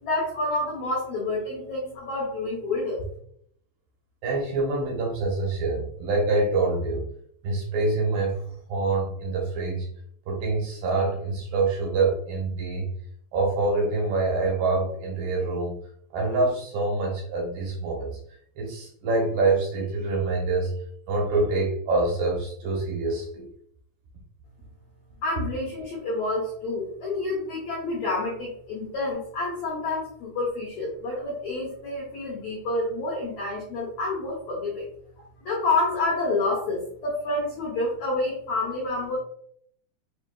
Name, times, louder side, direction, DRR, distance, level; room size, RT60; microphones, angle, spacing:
voice 1, 0.0-3.0 25.2-34.9 35.4-39.2, left 2 dB, 90° left, -3 dB, 1.6 m, -28 dB
voice 2, 4.2-7.0 7.4-8.4 8.7-9.9 10.3-12.9 13.3-15.7 16.1-18.1 18.6-20.7 21.1-23.5, right 3 dB, 75° right, -2 dB, 2.1 m, -25 dB
6.2 x 2.7 x 2.2 m, 0.65 s
omnidirectional pair, 4.6 m